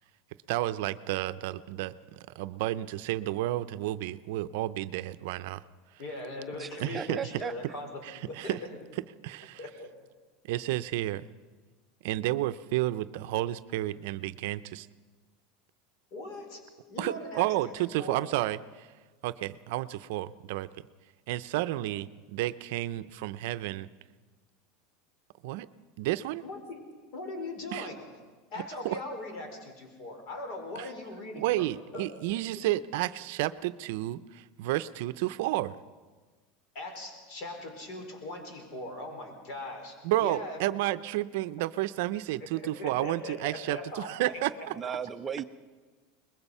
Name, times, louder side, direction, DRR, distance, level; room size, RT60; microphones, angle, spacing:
voice 1, 0.5-5.6 6.8-7.2 8.3-8.6 9.2-9.6 10.4-11.3 12.0-14.9 17.0-18.9 19.2-20.7 21.3-23.9 25.4-25.7 26.0-26.4 27.7-27.9 28.8-29.0 30.8-30.9 31.4-35.8 40.0-44.5 44.8-45.0, right 15 dB, 70° right, 13 dB, 0.6 m, -31 dB
voice 2, 6.0-8.6 9.6-9.9 16.1-16.6 16.9-17.7 18.0-18.3 26.4-26.8 27.1-28.0 28.5-31.7 31.9-32.1 36.7-40.6 42.4-44.7, left 1 dB, 50° left, 4 dB, 4.4 m, -40 dB
voice 3, 6.6-7.5 44.8-45.4, right 7 dB, 20° right, 10 dB, 0.6 m, -36 dB
22.5 x 21.0 x 5.6 m, 1.4 s
supercardioid pair, 150°, 0 cm